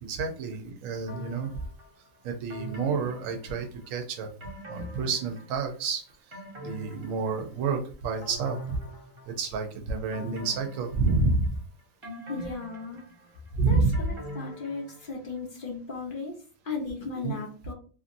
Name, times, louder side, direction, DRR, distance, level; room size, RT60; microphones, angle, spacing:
voice 1, 0.0-1.5 2.2-4.3 4.7-6.0 6.6-8.8 9.3-11.5 13.5-14.0 17.2-17.4, right 4 dB, 75° right, 4 dB, 1.0 m, -29 dB
sound 1, 1.1-1.9 2.5-3.9 4.4-5.7 6.1-7.8 8.2-9.6 10.1-11.6 12.0-15.3 15.6-15.7, equal, 25° right, 0.7 m, -43 dB
voice 2, 12.3-13.0 13.7-16.4 16.6-17.7, left 4 dB, 50° left, -1 dB, 0.7 m, -36 dB
2.8 x 2.6 x 2.5 m, 0.40 s
omnidirectional pair, 1.4 m